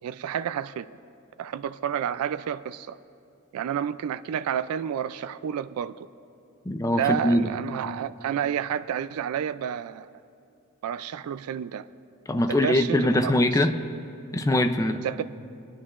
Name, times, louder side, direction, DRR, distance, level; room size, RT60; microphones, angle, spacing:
voice 1, 0.0-0.9 1.4-3.0 3.5-6.1 6.9-10.1 10.8-11.9 12.5-13.3 15.0-15.2, right 8 dB, 90° right, 0.3 m, -30 dB
voice 2, 6.7-7.5 12.3-13.7 14.3-15.0, left 1 dB, 15° left, 0.5 m, -22 dB
25.5 x 9.9 x 2.5 m
head